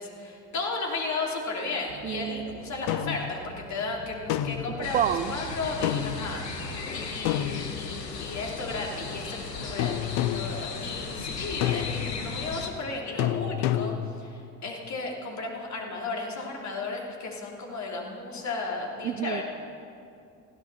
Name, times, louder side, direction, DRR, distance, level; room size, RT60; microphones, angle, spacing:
voice 1, 0.0-19.4, left 3 dB, 35° left, -1 dB, 3.4 m, -34 dB
sound 1, 1.9-6.9, right 4 dB, 85° right, 1.3 m, -45 dB
voice 2, 2.0-2.6 4.8-5.3 19.0-19.4, right 10 dB, 20° right, 11 dB, 0.3 m, -29 dB
sound 2, 2.9-3.3 4.3-4.8 5.8-6.3 7.3-8.1 9.8-10.6 11.6-12.2 13.2-14.2, left 12 dB, 50° left, 0.8 m, -28 dB
sound 3, 4.8-12.7, left 4 dB, 80° left, 1.5 m, -36 dB
20.0 x 15.5 x 4.3 m, 2.6 s
figure-of-eight pair, 65°, 48 cm